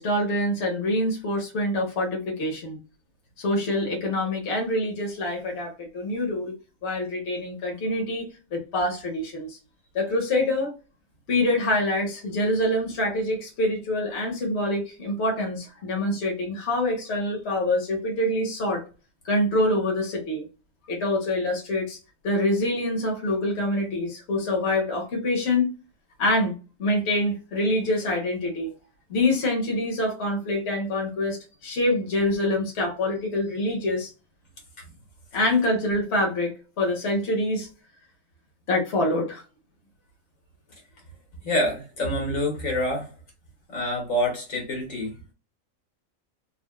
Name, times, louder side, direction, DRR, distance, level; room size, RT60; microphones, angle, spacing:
voice 1, 0.0-2.8 3.4-6.6 6.8-9.6 9.9-10.7 11.3-18.8 19.2-20.5 20.9-22.0 22.2-25.7 26.2-28.7 29.1-34.1 35.3-37.7 38.7-39.4, left 1 dB, 55° left, -1 dB, 1.2 m, -25 dB
voice 2, 41.4-43.1 43.7-45.3, left 1 dB, 80° left, 2 dB, 1.7 m, -27 dB
3.8 x 2.2 x 2.2 m, 0.33 s
omnidirectional pair, 1.4 m